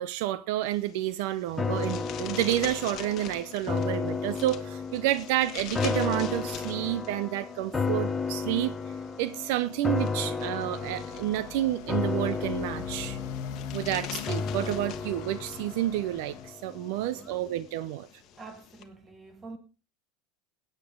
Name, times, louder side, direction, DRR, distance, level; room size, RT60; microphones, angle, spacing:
voice 1, 0.0-8.7 9.2-13.2 13.7-18.1, right 14 dB, 65° right, 0.6 m, -30 dB
sound 1, 0.6-18.8, left 10 dB, 35° left, 1.4 m, -45 dB
sound 2, 1.6-16.9 17.2-17.3, left 4 dB, 10° left, 1.0 m, -33 dB
Motorcycle, 10.5-16.5, left 8 dB, 55° left, 1.3 m, -41 dB
voice 2, 16.9-17.4 18.4-19.6, right 3 dB, 15° right, 1.9 m, -46 dB
17.0 x 9.0 x 3.8 m
supercardioid pair, 160°, 0 cm